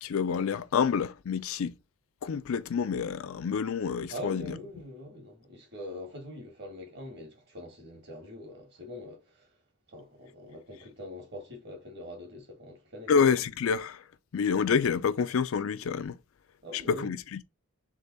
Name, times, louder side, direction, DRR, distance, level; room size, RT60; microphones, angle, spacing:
voice 1, 0.0-1.8 2.2-4.6 13.1-14.0 14.3-16.2 16.7-17.4, left 6 dB, 70° left, 0.4 m, -28 dB
voice 2, 4.1-9.5 9.9-13.1 16.6-17.1, left 1 dB, 50° right, 1.7 m, -43 dB
3.7 x 3.4 x 3.9 m
head